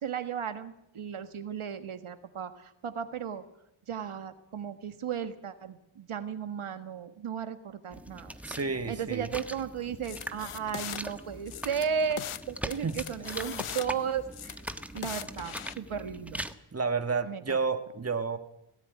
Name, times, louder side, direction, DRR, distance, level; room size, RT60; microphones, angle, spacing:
voice 1, 0.0-3.4 3.9-8.3 8.9-12.2 12.5-14.6 14.9-16.4 17.2-17.6, right 7 dB, 80° right, 9 dB, 1.6 m, -35 dB
sound 1, 7.9-16.5, right 1 dB, 5° right, 1.3 m, -41 dB
voice 2, 8.4-9.3 12.8-12.9 16.7-18.4, right 4 dB, 30° right, 8 dB, 1.5 m, -30 dB
sound 2, 10.0-11.0 11.5-12.4 12.7-13.9 14.3-15.7, left 10 dB, 80° left, 1.0 m, -40 dB
17.5 x 17.5 x 9.5 m, 0.81 s
wide cardioid pair, 80°, 49 cm